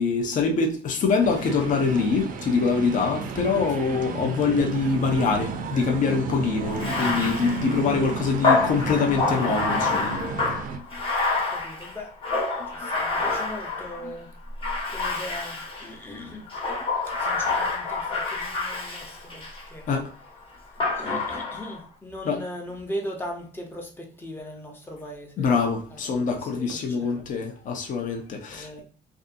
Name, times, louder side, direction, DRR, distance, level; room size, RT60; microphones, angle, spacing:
voice 1, 0.0-10.2 10.7-11.0 14.0-14.1 16.2-16.3 19.9-20.1 22.3-22.4 25.4-28.8, left 4 dB, 50° left, 0.7 m, -24 dB
sound 1, 1.2-10.8, right 5 dB, 55° right, 0.4 m, -33 dB
Bathtub (filling or washing), 6.7-14.1 14.6-15.9 16.5-19.7 20.8-21.8, left 3 dB, 30° left, 1.1 m, -27 dB
voice 2, 11.5-12.1 12.7-14.3 14.9-16.5 17.2-19.9 20.9-25.5 25.9-27.2 28.5-28.8, equal, 15° left, 0.7 m, -39 dB
2.6 x 2.4 x 2.5 m
cardioid pair, 110°, 17 cm